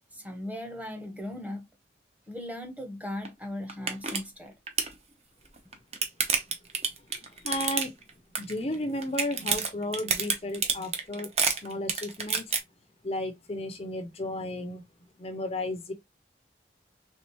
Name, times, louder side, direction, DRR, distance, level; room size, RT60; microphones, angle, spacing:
voice 1, 0.1-1.7 2.3-4.5, left 1 dB, 10° right, 1.0 m, -38 dB
sound 1, 3.3-3.4 3.7-4.2 4.5-4.9 5.6-8.1 8.4-8.8 9.0-12.6, right 5 dB, 35° right, 0.9 m, -28 dB
voice 2, 7.1-7.9 8.4-12.4 13.0-14.8 15.2-15.9, left 1 dB, 35° left, 0.6 m, -34 dB
4.2 x 3.6 x 3.1 m
head